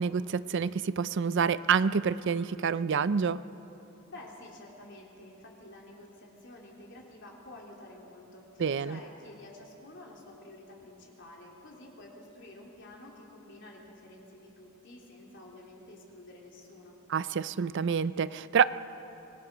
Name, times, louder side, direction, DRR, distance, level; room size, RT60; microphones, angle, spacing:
voice 1, 0.0-3.4 8.6-9.0 17.1-18.6, right 6 dB, 55° right, 16 dB, 0.4 m, -27 dB
voice 2, 4.1-17.0, left 1 dB, 55° left, -1 dB, 3.6 m, -50 dB
26.0 x 19.5 x 6.1 m, 2.9 s
head